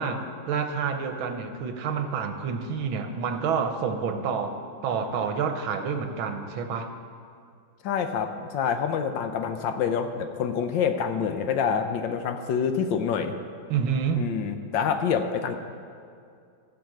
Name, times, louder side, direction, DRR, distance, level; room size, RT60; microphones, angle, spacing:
voice 1, 0.0-6.9 13.7-14.3, right 6 dB, 85° right, 7 dB, 1.7 m, -28 dB
voice 2, 7.8-13.4 14.2-15.5, left 7 dB, 70° left, 8 dB, 1.4 m, -27 dB
14.0 x 5.7 x 7.7 m, 2.3 s
omnidirectional pair, 2.2 m